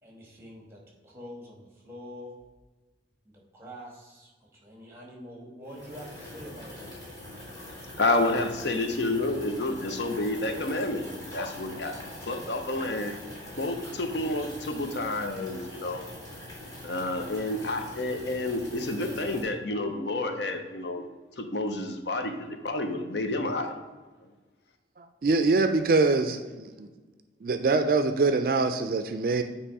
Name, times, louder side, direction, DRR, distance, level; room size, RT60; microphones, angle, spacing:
voice 1, 0.0-2.3 3.2-6.8, equal, 15° right, -1 dB, 1.4 m, -45 dB
sound 1, 5.6-19.4, left 1 dB, 20° left, 2.2 m, -43 dB
voice 2, 8.0-11.0 11.3-11.9 12.3-13.1 13.6-16.0 16.8-21.1 21.4-23.7, left 2 dB, 75° left, 6 dB, 0.7 m, -29 dB
voice 3, 25.0-26.9 27.4-29.4, right 3 dB, 50° right, 8 dB, 0.4 m, -24 dB
8.5 x 3.0 x 4.7 m, 1.3 s
head